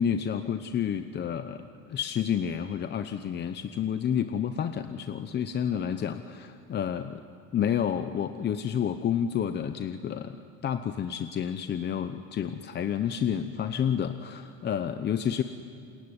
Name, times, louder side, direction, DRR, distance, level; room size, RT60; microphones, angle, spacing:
voice 1, 0.0-7.2 7.5-10.4 10.6-15.4, left 8 dB, 35° left, 9 dB, 0.9 m, -30 dB
28.5 x 20.5 x 9.7 m, 2.4 s
cardioid pair, 135°, 30 cm